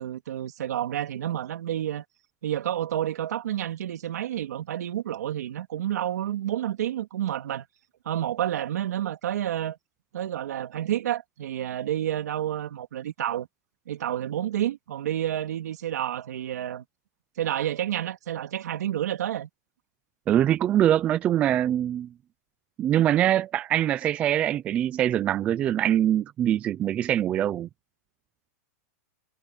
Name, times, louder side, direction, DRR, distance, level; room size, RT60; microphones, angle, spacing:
voice 1, 0.0-2.0 2.4-7.7 8.0-9.8 10.1-13.5 13.9-16.8 17.4-19.5, right 11 dB, 75° right, 3.2 m, -29 dB
voice 2, 20.3-22.1 22.8-27.7, right 11 dB, 15° right, 0.3 m, -23 dB
supercardioid pair, 175°, 9 cm